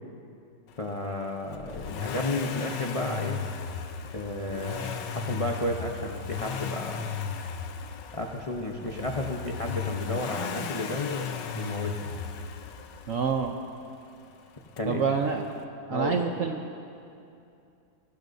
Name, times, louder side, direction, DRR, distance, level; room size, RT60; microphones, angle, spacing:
voice 1, 0.8-3.4 4.1-7.2 8.1-12.1 14.8-15.0 15.9-16.3, left 1 dB, 45° left, 0 dB, 0.4 m, -32 dB
Accelerating revving vroom, 1.5-13.5 14.8-14.9, left 6 dB, 75° left, 1.4 m, -35 dB
voice 2, 13.1-13.5 14.9-15.4 15.9-16.8, right 5 dB, 65° right, 4 dB, 0.8 m, -27 dB
21.0 x 17.0 x 2.7 m, 2.6 s
omnidirectional pair, 2.0 m